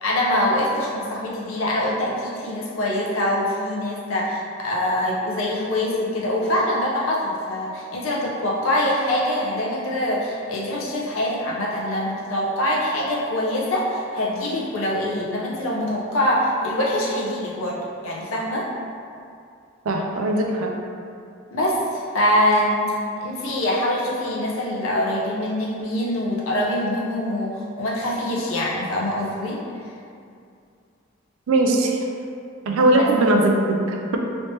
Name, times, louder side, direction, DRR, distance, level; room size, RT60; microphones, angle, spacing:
voice 1, 0.0-18.7 21.5-22.9 23.2-29.6 32.9-33.1, left 1 dB, 80° left, -4 dB, 0.7 m, -24 dB
voice 2, 19.9-20.7 31.5-32.0 32.7-34.2, right 2 dB, 85° right, 1 dB, 0.4 m, -20 dB
3.2 x 3.1 x 2.8 m, 2.4 s
head